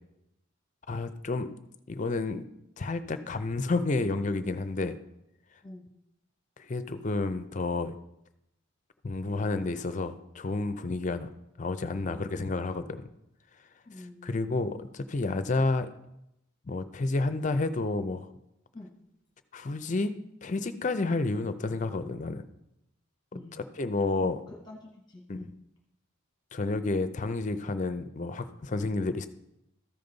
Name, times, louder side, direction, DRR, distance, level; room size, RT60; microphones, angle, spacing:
voice 1, 0.9-1.5 1.9-2.4 2.8-5.0 6.6-7.9 9.0-11.3 11.6-13.0 14.0-15.9 16.7-18.3 19.5-20.1 20.4-22.4 23.8-24.4 25.3-25.4 26.5-29.3, left 3 dB, 35° left, 11 dB, 0.4 m, -30 dB
voice 2, 13.9-14.6 18.7-18.9 23.3-23.6 24.2-25.5, left 1 dB, 20° left, 0 dB, 1.1 m, -47 dB
13.5 x 5.2 x 3.9 m, 0.84 s
head